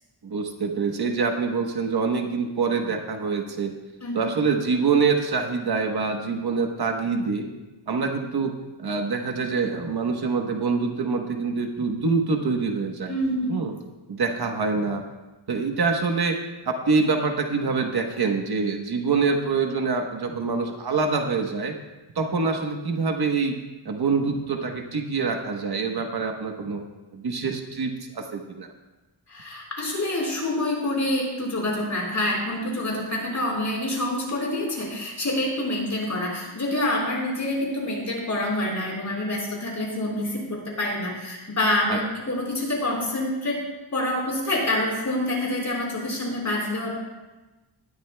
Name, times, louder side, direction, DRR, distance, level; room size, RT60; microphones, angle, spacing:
voice 1, 0.2-3.7 4.1-7.5 7.9-8.5 8.8-13.2 13.5-13.7 14.1-15.0 15.5-16.4 16.6-21.8 22.1-23.6 23.8-26.8 27.1-28.7 41.9-42.0, right 4 dB, 55° right, 3 dB, 1.2 m, -25 dB
voice 2, 13.1-13.6 29.3-43.6 43.9-46.9, left 1 dB, 35° left, -3 dB, 4.4 m, -27 dB
18.5 x 13.0 x 2.3 m, 1.1 s
wide cardioid pair, 135°, 47 cm